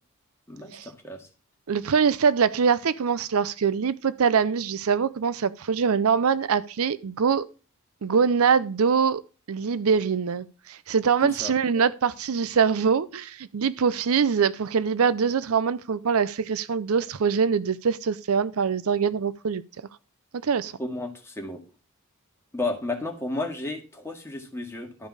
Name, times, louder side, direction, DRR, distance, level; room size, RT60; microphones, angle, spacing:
voice 1, 0.5-1.3 11.2-11.5 20.8-21.6 22.5-25.1, left 2 dB, 10° left, 2.0 m, -32 dB
voice 2, 1.7-7.5 8.0-9.2 9.5-19.6 20.4-20.7, right 6 dB, 70° right, 0.5 m, -23 dB
12.0 x 5.3 x 4.9 m
head